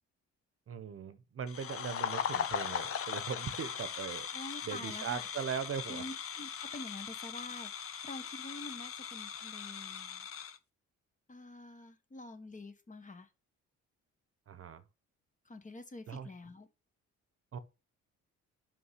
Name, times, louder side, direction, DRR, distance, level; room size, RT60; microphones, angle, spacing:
voice 1, 0.7-4.3 4.6-6.0 14.5-14.8 16.1-16.3 17.5-17.6, right 7 dB, 50° right, 1.0 m, -39 dB
sound 1, 1.5-10.6, left 8 dB, 50° left, 0.9 m, -39 dB
voice 2, 4.3-5.3 5.9-10.3 11.3-13.3 15.4-16.7, left 2 dB, 25° left, 1.3 m, -47 dB
5.7 x 5.3 x 5.8 m
cardioid pair, 90°, 30 cm